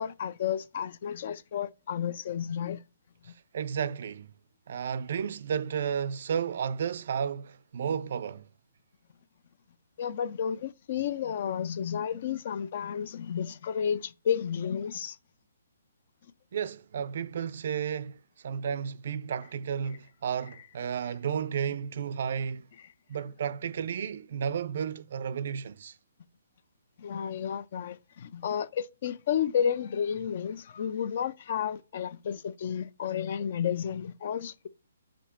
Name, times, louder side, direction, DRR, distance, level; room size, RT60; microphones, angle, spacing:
voice 1, 0.0-2.8 10.0-15.2 27.0-34.7, left 8 dB, 45° left, 0.4 m, -32 dB
voice 2, 3.2-4.3 4.7-8.4 16.5-18.2 18.4-22.7 23.1-26.0, right 7 dB, 55° right, 0.4 m, -32 dB
5.1 x 4.9 x 4.3 m
hypercardioid pair, 160°, 0 cm